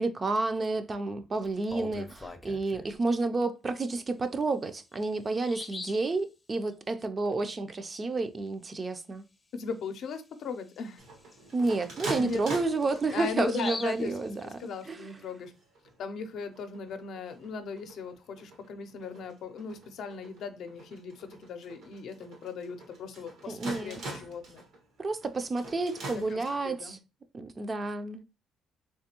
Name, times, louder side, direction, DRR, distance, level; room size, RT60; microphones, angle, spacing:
voice 1, 0.0-9.3 11.5-15.0 23.5-24.0 25.0-27.0 27.3-28.2, right 3 dB, 35° right, 0.4 m, -30 dB
Bird vocalization bird call bird song, 1.5-2.9 4.4-4.5 4.9-5.0 5.4-6.1 9.6-9.7 10.1-10.2 10.8-15.0, left 3 dB, 25° left, 0.5 m, -44 dB
voice 2, 9.5-11.0 12.2-12.4 13.1-14.1 14.4-15.5 16.0-24.6 26.1-27.0, left 5 dB, 70° left, 0.5 m, -38 dB
sound 1, 11.0-13.5 14.1-14.6 15.1-15.2 15.4-16.0 16.4-26.9, right 2 dB, 85° right, 1.4 m, -44 dB
3.4 x 3.2 x 2.9 m
cardioid pair, 90°, 0 cm